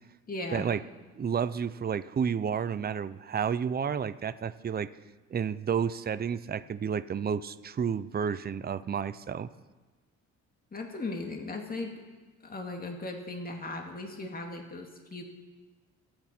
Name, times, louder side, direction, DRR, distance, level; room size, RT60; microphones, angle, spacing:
voice 1, 0.3-0.7 10.7-11.9 12.4-15.2, left 2 dB, 30° left, 2 dB, 2.3 m, -37 dB
voice 2, 1.1-4.9 5.3-9.5, right 7 dB, 30° right, 13 dB, 0.7 m, -31 dB
28.0 x 9.6 x 4.5 m, 1.3 s
cardioid pair, 90°, 30 cm